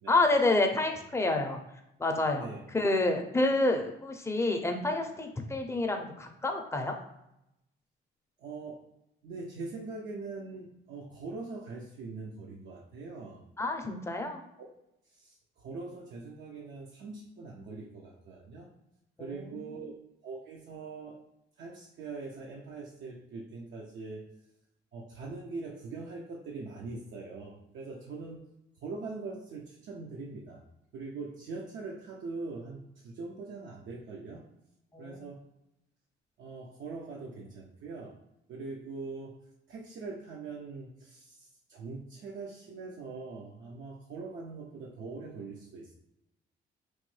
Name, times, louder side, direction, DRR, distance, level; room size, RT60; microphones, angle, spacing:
voice 1, 0.1-1.6 2.0-7.0 13.6-14.4 19.2-19.6 34.9-35.2, left 2 dB, 15° left, 4 dB, 0.5 m, -28 dB
voice 2, 8.4-8.8 9.2-13.4 15.1-18.7 19.2-19.9 20.2-21.2 21.6-24.2 24.9-28.4 28.8-30.6 30.9-34.4 35.0-35.4 36.4-38.1 38.5-39.4 39.7-46.0, right 3 dB, 75° right, -2 dB, 0.5 m, -42 dB
3.0 x 2.2 x 3.1 m, 0.86 s
cardioid pair, 90°, 20 cm